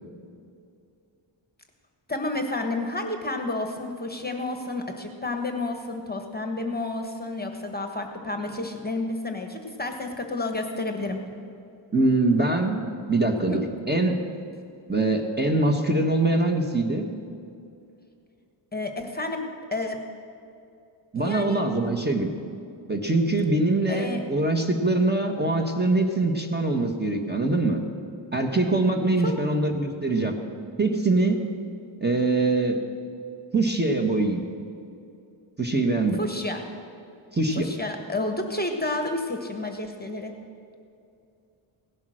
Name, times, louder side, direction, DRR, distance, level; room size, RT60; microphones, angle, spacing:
voice 1, 2.1-11.2 13.5-13.6 18.7-19.4 19.7-20.0 21.1-21.6 23.9-24.2 29.2-29.3 36.2-36.6 37.5-40.3, left 2 dB, 20° left, 4 dB, 1.3 m, -30 dB
voice 2, 11.9-12.8 13.1-14.2 14.9-17.0 21.1-22.3 22.9-27.8 28.3-30.4 30.8-31.4 32.0-32.8 33.5-34.4 35.6-36.2 37.3-37.7, right 2 dB, 20° right, 2 dB, 1.4 m, -23 dB
17.0 x 10.5 x 6.4 m, 2.5 s
wide cardioid pair, 95°, 49 cm